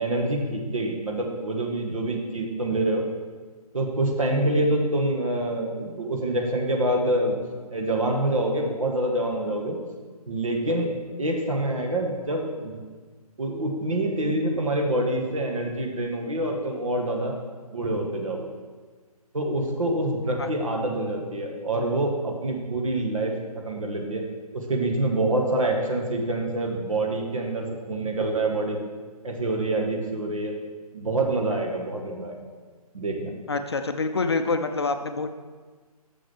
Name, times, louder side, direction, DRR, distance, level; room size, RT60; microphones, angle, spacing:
voice 1, 0.0-3.1 3.7-7.4 7.7-9.8 10.3-12.8 13.4-17.4 17.7-18.5 19.3-24.2 24.5-28.8 29.2-30.6 30.9-32.4 32.9-33.4, right 1 dB, 55° right, 1 dB, 1.6 m, -26 dB
voice 2, 33.5-35.3, left 3 dB, 40° left, 7 dB, 0.5 m, -26 dB
6.4 x 6.2 x 6.3 m, 1.4 s
figure-of-eight pair, 145°, 20 cm